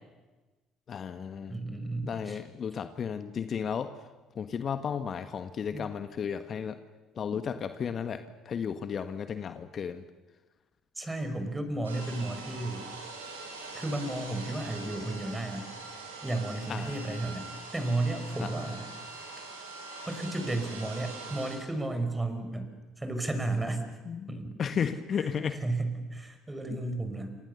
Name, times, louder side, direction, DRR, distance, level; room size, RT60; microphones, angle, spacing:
voice 1, 0.9-1.5 2.0-3.9 4.3-6.8 7.1-10.0 16.7-16.9 18.4-18.5 24.1-25.6, left 7 dB, 45° left, 9 dB, 1.4 m, -34 dB
voice 2, 1.5-2.4 5.7-5.9 11.0-12.9 13.7-15.7 16.2-18.9 20.1-22.7 23.0-23.8 24.3-24.9 25.2-27.4, right 2 dB, 15° right, 8 dB, 5.6 m, -33 dB
sound 1, 11.8-21.6, right 3 dB, 85° right, 5.9 m, -43 dB
28.5 x 26.5 x 7.0 m, 1.2 s
figure-of-eight pair, 55°, 0 cm